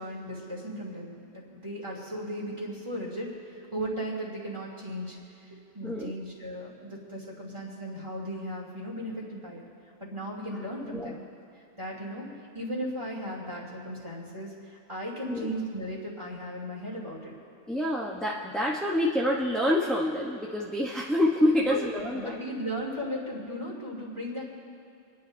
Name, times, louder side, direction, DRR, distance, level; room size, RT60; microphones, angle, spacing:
voice 1, 0.0-5.2 5.7-9.6 10.0-11.2 11.8-12.3 12.5-17.3 21.6-21.8 22.1-24.5, equal, 20° right, -4 dB, 2.7 m, -36 dB
voice 2, 10.8-11.1 15.3-15.5 17.7-22.4, left 1 dB, ahead, -4 dB, 0.7 m, -27 dB
29.5 x 11.0 x 2.7 m, 2.5 s
omnidirectional pair, 1.4 m